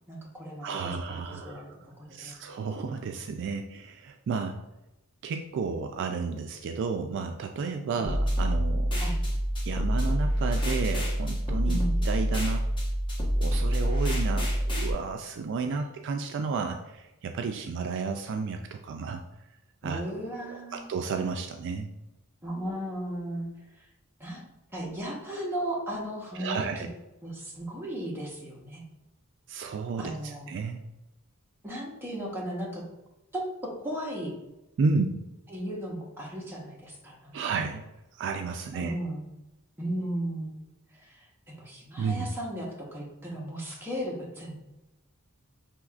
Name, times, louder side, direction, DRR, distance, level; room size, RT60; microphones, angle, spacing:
voice 1, 0.1-1.7 2.0-2.4 7.9-8.2 9.0-9.2 11.7-11.9 15.6-15.8 19.8-20.9 22.4-23.5 24.2-26.9 27.2-28.8 30.0-30.5 31.6-32.8 33.3-33.4 33.8-34.3 35.5-37.6 38.7-39.3 39.8-40.5 41.0-44.5, right 1 dB, 10° right, -4 dB, 1.0 m, -36 dB
voice 2, 0.6-1.6 2.1-4.6 5.2-8.9 9.6-11.8 12.0-12.6 13.4-19.2 19.8-20.0 20.5-21.9 26.4-26.9 29.5-30.8 34.8-35.2 37.3-37.8 38.2-39.0 42.0-42.3, right 4 dB, 55° right, 5 dB, 0.3 m, -32 dB
sound 1, 8.1-14.9, equal, 20° left, 1.0 m, -26 dB
6.1 x 3.1 x 2.4 m, 0.97 s
head